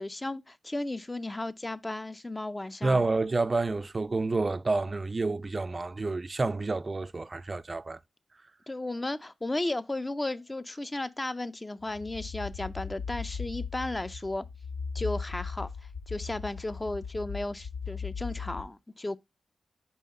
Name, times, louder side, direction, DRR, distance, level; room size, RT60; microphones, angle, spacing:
voice 1, 0.0-3.0 8.7-14.4 14.9-15.7 16.1-19.2, left 2 dB, 25° left, 0.4 m, -34 dB
voice 2, 2.8-8.0, right 3 dB, 35° right, 0.4 m, -29 dB
sound 1, 11.8-18.6, left 5 dB, 75° left, 1.0 m, -38 dB
5.5 x 4.2 x 4.1 m
cardioid pair, 60°, 0 cm